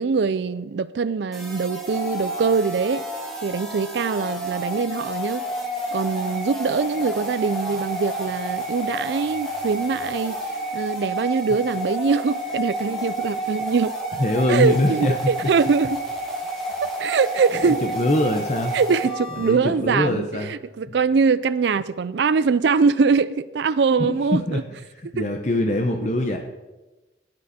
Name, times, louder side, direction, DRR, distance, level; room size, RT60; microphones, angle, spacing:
voice 1, 0.0-3.0 3.4-5.4 5.9-10.4 10.7-13.9 14.5-16.0 16.8-17.8 18.7-24.6 25.2-25.3, right 5 dB, 70° right, 0.4 m, -22 dB
sound 1, 1.3-19.5, right 1 dB, ahead, 2.3 m, -30 dB
voice 2, 14.2-15.1 17.6-18.8 19.4-20.5 20.9-21.0 24.0-24.6 25.0-26.4, left 1 dB, 40° left, 0.9 m, -23 dB
17.0 x 9.7 x 4.2 m
head